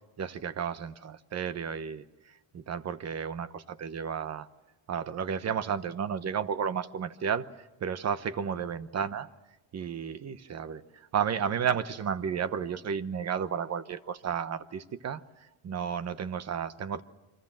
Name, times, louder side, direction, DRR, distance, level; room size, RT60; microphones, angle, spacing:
voice 1, 0.2-4.5 4.9-9.3 9.7-15.2 15.6-17.0, right 7 dB, 35° right, 13 dB, 1.0 m, -32 dB
29.0 x 24.5 x 7.5 m, 0.99 s
cardioid pair, 145°, 47 cm